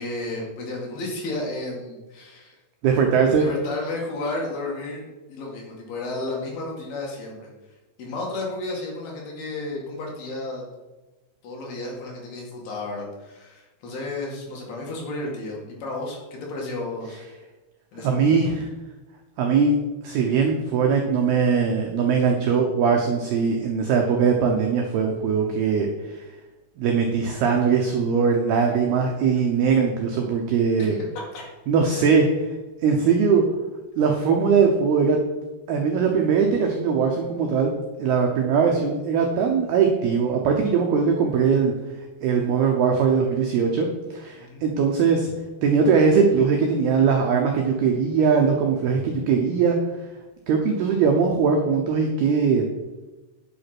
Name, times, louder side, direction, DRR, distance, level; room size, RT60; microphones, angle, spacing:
voice 1, 0.0-2.6 3.3-7.5 8.0-10.7 11.4-17.2 17.9-18.4 30.8-31.0 31.3-31.4 44.4-44.7, left 2 dB, 55° left, -2 dB, 3.6 m, -32 dB
voice 2, 2.8-3.5 18.0-18.7 19.4-19.8 20.0-26.2 26.8-30.9 31.7-32.5 32.8-33.4 34.0-35.2 35.7-37.7 38.0-41.7 42.2-45.3 45.6-49.8 50.5-52.7, right 5 dB, 90° right, 2 dB, 2.2 m, -21 dB
9.0 x 8.4 x 6.0 m, 1.1 s
omnidirectional pair, 6.0 m